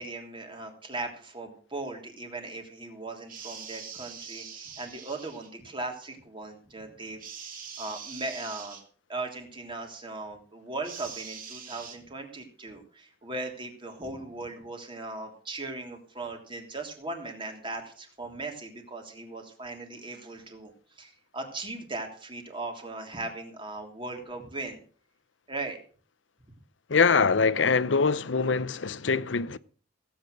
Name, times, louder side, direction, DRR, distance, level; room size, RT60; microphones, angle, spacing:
voice 1, 0.0-7.5 7.8-8.8 9.1-20.7 20.9-24.8 25.5-25.8, right 2 dB, 25° right, 3.2 m, -38 dB
sound 1, 3.3-5.5 7.2-8.8 10.8-12.0, right 6 dB, 50° right, 3.2 m, -43 dB
voice 2, 26.9-29.6, left 5 dB, 75° left, 0.7 m, -23 dB
16.5 x 8.9 x 6.4 m
head